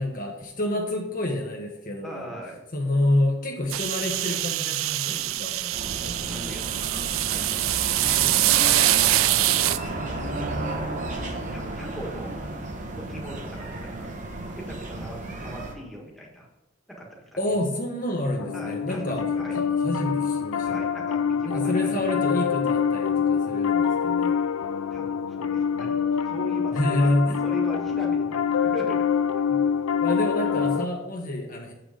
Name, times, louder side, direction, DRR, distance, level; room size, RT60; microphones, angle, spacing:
voice 1, 0.0-2.3 2.7-6.6 8.0-8.8 17.4-19.3 19.5-20.8 21.5-24.4 26.7-27.4 29.5-29.6 30.0-31.7, left 1 dB, 40° left, 1 dB, 1.1 m, -28 dB
voice 2, 2.0-2.6 5.0-5.4 6.2-7.6 8.0-8.9 9.2-9.7 11.5-12.4 13.0-14.1 14.5-16.5 16.9-17.4 18.5-19.6 20.6-22.0 24.9-27.1 27.4-29.1, right 1 dB, ahead, -3 dB, 1.5 m, -40 dB
sound 1, 3.7-9.8, right 15 dB, 75° right, 0.3 m, -24 dB
sound 2, 5.7-15.7, right 2 dB, 35° right, 1.1 m, -33 dB
Piano, 18.4-30.8, left 7 dB, 85° left, 0.4 m, -25 dB
7.8 x 5.9 x 5.0 m, 1.0 s
head